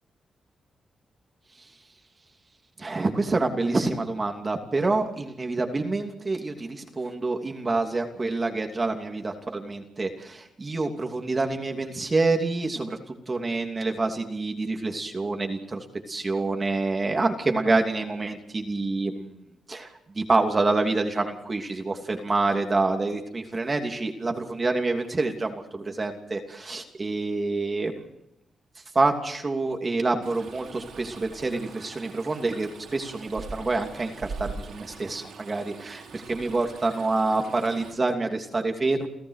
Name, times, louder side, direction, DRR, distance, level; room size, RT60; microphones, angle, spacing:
voice 1, 2.8-13.0 13.3-19.3 19.7-27.9 28.9-39.1, right 3 dB, 30° right, 4 dB, 2.9 m, -27 dB
Stream, 30.2-37.9, right 4 dB, 75° right, 5.2 m, -42 dB
29.5 x 14.5 x 6.7 m, 0.81 s
cardioid pair, 80°, 0 cm